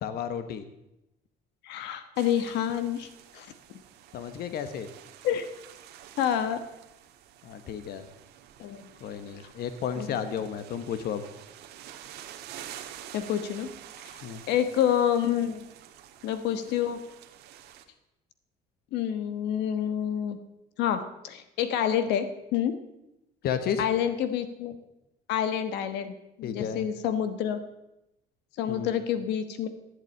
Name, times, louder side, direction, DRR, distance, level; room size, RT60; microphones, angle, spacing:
voice 1, 0.0-0.6 4.1-4.9 7.4-8.1 9.0-11.2 14.2-14.4 23.4-23.9 26.4-26.9 28.7-28.9, left 8 dB, 65° left, 10 dB, 1.2 m, -32 dB
voice 2, 1.6-3.1 3.3-3.5 5.2-5.5 6.2-6.6 8.6-8.8 10.0-10.1 13.1-13.7 14.5-15.6 16.2-17.0 18.9-20.4 20.8-22.8 23.8-24.7 25.3-27.6 28.6-29.7, left 9 dB, 90° left, 10 dB, 1.3 m, -28 dB
sound 1, 2.2-17.8, right 11 dB, 85° right, 1.5 m, -48 dB
14.5 x 8.3 x 8.9 m, 0.90 s
cardioid pair, 110°, 17 cm